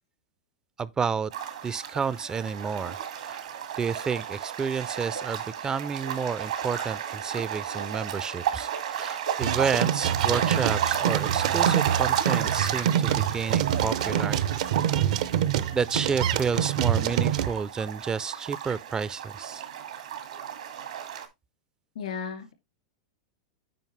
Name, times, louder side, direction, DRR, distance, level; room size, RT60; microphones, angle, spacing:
voice 1, 0.8-1.3 1.6-3.5 3.8-14.4 15.7-19.6, right 6 dB, 20° right, 0.3 m, -30 dB
sound 1, 1.3-21.3, right 9 dB, 85° right, 2.1 m, -32 dB
sound 2, 9.4-17.5, right 10 dB, 70° right, 0.6 m, -26 dB
voice 2, 21.9-22.5, left 6 dB, 80° left, 2.6 m, -34 dB
9.1 x 5.2 x 3.2 m
hypercardioid pair, 125°, 4 cm